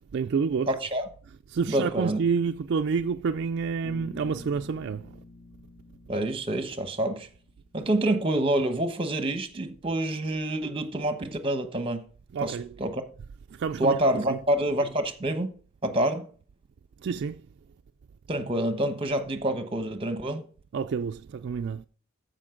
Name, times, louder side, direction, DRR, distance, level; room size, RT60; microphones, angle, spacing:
voice 1, 0.1-0.7 1.5-5.2 12.3-12.7 13.5-14.0 14.3-14.4 17.0-17.4 20.7-21.9, right 5 dB, 50° right, 0.3 m, -28 dB
voice 2, 0.7-1.1 1.7-2.2 6.1-7.3 7.7-12.0 12.4-13.0 13.8-15.5 15.8-16.3 18.3-20.4, right 1 dB, 25° right, 1.0 m, -27 dB
Bass guitar, 3.8-7.9, left 2 dB, 25° left, 1.3 m, -49 dB
13.5 x 5.1 x 3.8 m
head